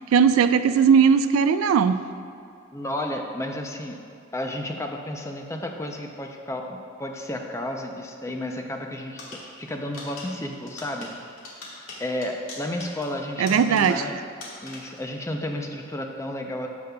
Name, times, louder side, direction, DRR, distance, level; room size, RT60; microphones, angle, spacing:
voice 1, 0.1-2.0 13.4-14.0, right 6 dB, 80° right, 12 dB, 0.3 m, -18 dB
voice 2, 2.7-4.0 4.3-9.2 9.6-11.1 12.0-14.1 14.6-16.7, left 1 dB, 15° left, 3 dB, 0.5 m, -32 dB
sound 1, 9.2-14.2 14.4-15.1, left 2 dB, 85° left, 1.7 m, -42 dB
14.5 x 5.2 x 2.3 m, 2.5 s
head